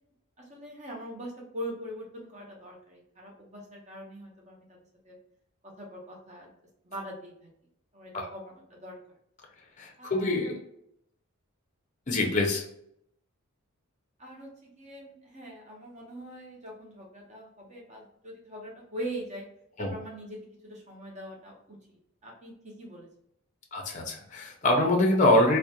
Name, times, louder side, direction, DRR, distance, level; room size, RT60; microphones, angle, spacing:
voice 1, 0.4-4.8 5.0-5.2 5.6-6.5 6.8-7.5 7.9-9.0 10.0-10.6 14.2-19.5 19.8-20.4 20.6-22.0 22.2-23.1, right 1 dB, 30° right, -1 dB, 0.7 m, -42 dB
voice 2, 9.8-10.6 12.1-12.6 19.8-19.9 23.7-25.6, left 1 dB, 35° left, 2 dB, 0.5 m, -24 dB
2.4 x 2.1 x 2.8 m, 0.72 s
head